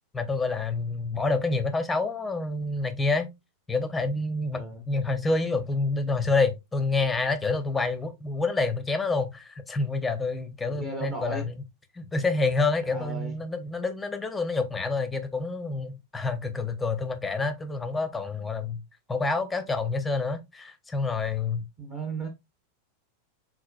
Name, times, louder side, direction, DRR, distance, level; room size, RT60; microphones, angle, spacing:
voice 1, 0.1-3.3 3.7-11.6 12.0-18.8 19.1-21.6, left 3 dB, 10° left, 0.7 m, -28 dB
voice 2, 4.5-4.9 10.7-11.5 12.9-13.4 21.8-22.3, right 3 dB, 25° right, 1.1 m, -35 dB
4.6 x 3.9 x 2.3 m
figure-of-eight pair, 90°, 0 cm